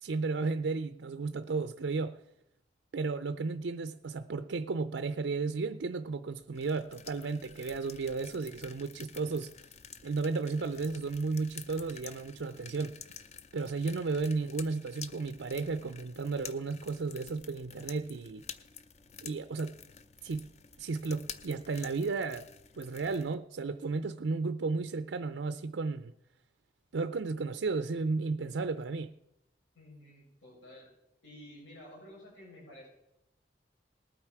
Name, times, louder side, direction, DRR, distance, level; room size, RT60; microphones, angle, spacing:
voice 1, 0.0-2.2 2.9-9.5 10.0-13.0 13.5-18.4 19.2-19.8 20.2-20.5 20.8-22.5 22.8-26.1 26.9-29.1, right 4 dB, 85° right, 0.5 m, -33 dB
sound 1, 6.6-23.4, left 7 dB, 35° left, 0.6 m, -50 dB
voice 2, 29.7-30.9 31.2-32.9, left 1 dB, 90° left, 6.8 m, -51 dB
19.5 x 9.0 x 4.7 m
head